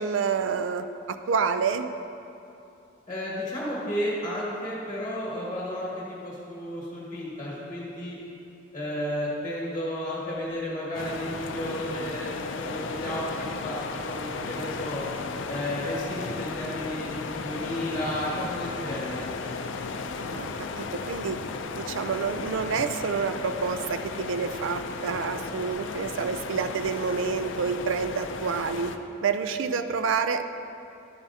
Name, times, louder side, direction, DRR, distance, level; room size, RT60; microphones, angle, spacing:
voice 1, 0.0-1.9 20.1-21.4 21.8-28.9 29.2-30.4, right 5 dB, 80° right, 10 dB, 0.4 m, -28 dB
voice 2, 3.1-8.2 8.7-12.3 12.6-13.8 14.1-15.0 15.5-19.3, equal, 15° left, -7 dB, 1.5 m, -32 dB
sound 1, 10.9-29.0, left 4 dB, 75° left, 0.4 m, -35 dB
11.5 x 7.0 x 2.8 m, 2.7 s
head